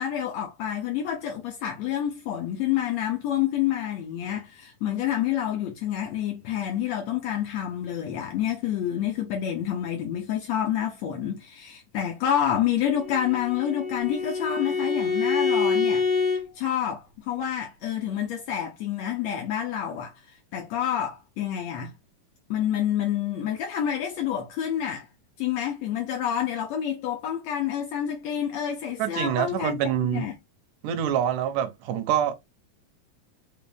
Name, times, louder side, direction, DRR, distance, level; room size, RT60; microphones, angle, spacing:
voice 1, 0.0-16.1 16.5-21.9 22.5-25.1 25.4-29.8 30.1-30.3, left 10 dB, 80° left, 1.5 m, -28 dB
Bowed string instrument, 12.9-16.4, left 4 dB, 45° left, 1.5 m, -26 dB
voice 2, 29.0-30.3 30.8-32.3, right 9 dB, 75° right, 2.2 m, -26 dB
5.4 x 2.5 x 3.3 m
omnidirectional pair, 4.0 m